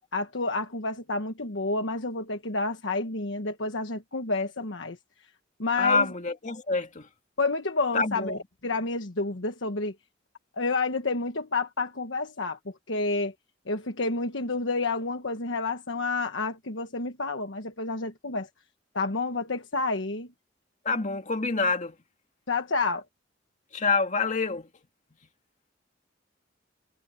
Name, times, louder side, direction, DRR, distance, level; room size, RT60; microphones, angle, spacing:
voice 1, 0.1-5.0 5.6-6.1 7.4-9.9 10.6-12.6 12.9-13.3 13.7-18.5 18.9-20.3 22.5-23.0, left 3 dB, 75° left, 1.3 m, -29 dB
voice 2, 5.8-7.1 7.9-8.4 20.9-21.9 23.7-24.7, left 3 dB, 40° left, 2.1 m, -26 dB
head